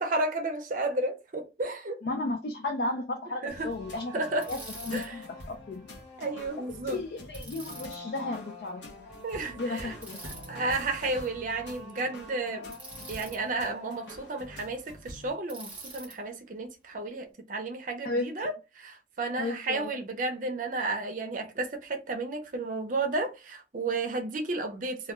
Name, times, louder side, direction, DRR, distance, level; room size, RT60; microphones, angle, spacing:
voice 1, 0.0-2.0 3.4-3.7 4.1-4.5 4.9-5.2 6.2-7.0 9.2-10.0 10.2-12.7 13.1-25.1, right 2 dB, 45° right, 0.5 m, -32 dB
voice 2, 2.0-4.1 4.5-4.6 4.9-5.9 6.7-8.9 9.6-10.4 18.0-18.3 19.4-19.9, left 2 dB, 60° left, 0.4 m, -34 dB
sound 1, 3.5-15.3, left 1 dB, 80° left, 0.8 m, -45 dB
Bicycle, 4.4-5.1 7.3-8.0 10.0-10.5 12.7-13.4 15.5-16.2, right 2 dB, 10° right, 0.8 m, -45 dB
2.3 x 2.2 x 3.0 m
head